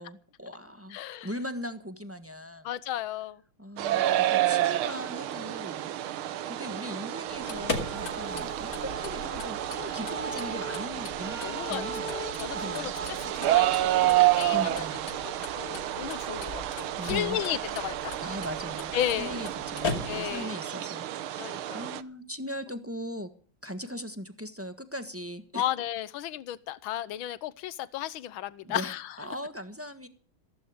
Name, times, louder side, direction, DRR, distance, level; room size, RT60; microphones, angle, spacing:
voice 1, 0.0-2.7 3.6-12.1 12.5-12.9 14.4-15.1 17.0-17.4 18.2-23.3 23.6-25.6 28.6-30.1, equal, 10° right, 9 dB, 1.1 m, -39 dB
voice 2, 0.9-1.3 2.6-3.4 9.9-10.0 11.4-14.9 15.2-18.1 18.9-19.4 20.1-20.5 21.4-21.9 25.5-29.2, left 12 dB, 75° left, 17 dB, 1.7 m, -34 dB
sound 1, 3.8-22.0, right 14 dB, 80° right, 1.7 m, -30 dB
sound 2, 7.3-20.5, left 3 dB, 45° left, 3.0 m, -40 dB
sound 3, 7.5-14.2, right 4 dB, 30° right, 2.6 m, -40 dB
16.0 x 15.5 x 5.0 m, 0.42 s
omnidirectional pair, 2.3 m